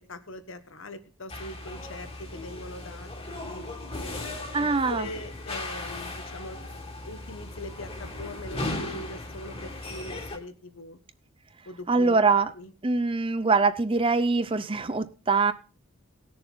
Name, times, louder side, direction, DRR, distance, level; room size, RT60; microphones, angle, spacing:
voice 1, 0.1-3.6 4.0-6.6 7.0-11.0 11.6-12.7, left 1 dB, 70° left, 1.3 m, -42 dB
sound 1, 1.3-10.4, left 2 dB, 30° left, 1.9 m, -37 dB
voice 2, 4.5-5.1 11.9-12.5 12.8-15.5, right 4 dB, 25° right, 0.5 m, -23 dB
18.5 x 6.8 x 3.9 m
head